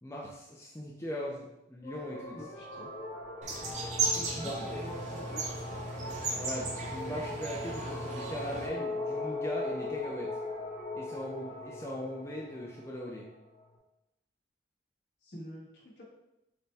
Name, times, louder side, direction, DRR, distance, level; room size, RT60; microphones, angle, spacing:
voice 1, 0.0-2.4 4.4-4.8 6.4-10.3 10.9-13.3, equal, 15° left, -3 dB, 0.5 m, -39 dB
sound 1, 1.8-13.7, left 2 dB, 45° left, 1.4 m, -40 dB
voice 2, 2.3-2.9 4.1-5.4 15.2-16.0, equal, 65° left, -5 dB, 1.4 m, -45 dB
sound 2, 3.4-8.7, right 3 dB, 40° right, 0.7 m, -36 dB
6.5 x 2.2 x 3.4 m, 0.89 s
head